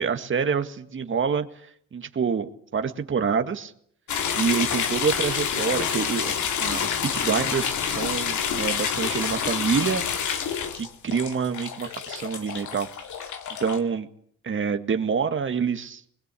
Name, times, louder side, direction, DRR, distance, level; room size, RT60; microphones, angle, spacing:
voice 1, 0.0-1.5 1.9-3.7 4.3-10.0 10.7-12.9 13.2-13.3 13.6-14.1 14.4-16.0, right 6 dB, 40° right, 8 dB, 1.9 m, -27 dB
sound 1, 4.1-13.8, left 7 dB, 75° left, 2.6 m, -28 dB
21.5 x 21.5 x 8.5 m, 0.64 s
cardioid pair, 90°, 30 cm